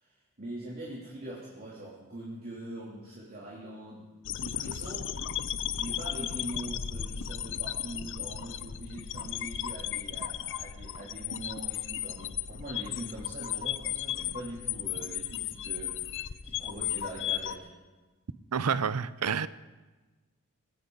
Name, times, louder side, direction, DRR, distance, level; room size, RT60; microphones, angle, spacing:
voice 1, 0.0-5.1 5.8-17.7, right 1 dB, 45° right, -6 dB, 3.0 m, -42 dB
sound 1, 4.2-17.6, left 10 dB, 60° left, 0.6 m, -35 dB
voice 2, 18.5-19.5, right 6 dB, 80° right, 16 dB, 0.6 m, -28 dB
19.5 x 17.5 x 3.9 m, 1.3 s
head